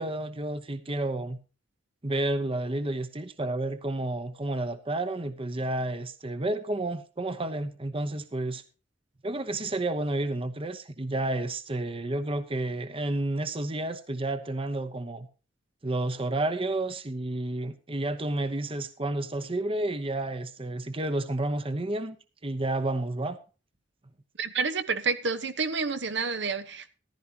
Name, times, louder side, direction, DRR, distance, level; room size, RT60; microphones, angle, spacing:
voice 1, 0.0-1.4 2.0-8.6 9.2-15.3 15.8-22.2 22.4-23.4, right 2 dB, 30° right, 0.9 m, -30 dB
voice 2, 24.4-26.9, right 4 dB, 70° right, 1.1 m, -29 dB
14.5 x 12.0 x 2.9 m
head